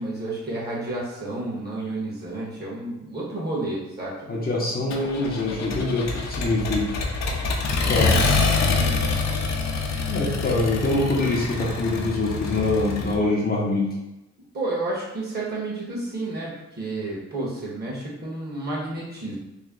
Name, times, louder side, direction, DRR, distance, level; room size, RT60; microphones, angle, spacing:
voice 1, 0.0-4.1 7.7-8.0 8.5-9.0 14.5-19.4, right 2 dB, 35° right, -5 dB, 1.4 m, -31 dB
voice 2, 4.3-6.9 7.9-8.1 10.1-13.9, left 2 dB, 30° left, -3 dB, 0.8 m, -24 dB
Accelerating revving vroom, 4.9-13.2, left 3 dB, 65° left, 0.7 m, -25 dB
3.2 x 2.3 x 3.7 m, 0.94 s
cardioid pair, 90°, 30 cm